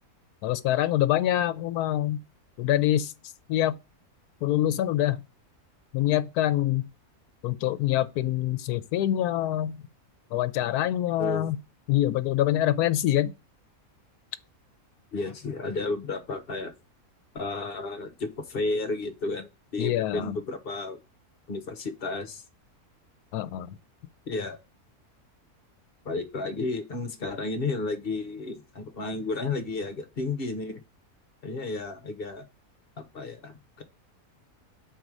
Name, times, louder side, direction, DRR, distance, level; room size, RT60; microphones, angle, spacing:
voice 1, 0.4-2.2 2.6-3.1 3.5-3.8 4.4-5.2 5.9-6.9 7.4-9.8 10.3-11.6 11.9-13.3 19.8-20.4 23.3-23.8, left 13 dB, 85° left, 1.1 m, -25 dB
voice 2, 15.1-16.7 17.3-21.0 21.5-22.4 24.3-24.6 26.0-30.8 31.4-32.5 33.0-33.8, left 3 dB, 40° left, 1.1 m, -32 dB
5.2 x 4.4 x 6.1 m
omnidirectional pair, 1.6 m